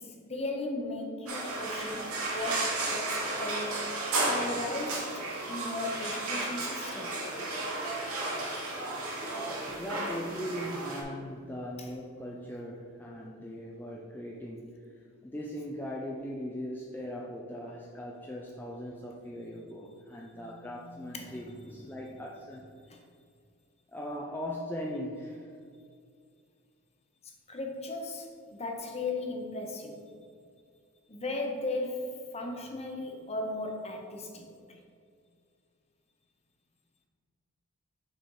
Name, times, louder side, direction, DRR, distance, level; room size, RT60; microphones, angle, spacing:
voice 1, 0.0-3.9 4.3-7.2 11.8-11.9 20.3-22.1 22.9-23.0 27.5-30.1 31.1-34.8, left 2 dB, 30° left, 2 dB, 0.9 m, -37 dB
sound 1, 1.3-11.0, right 2 dB, 75° right, 1.6 m, -33 dB
voice 2, 9.7-14.8 15.2-22.6 23.9-25.5, equal, 10° left, -2 dB, 0.4 m, -39 dB
6.4 x 4.1 x 4.7 m, 2.3 s
head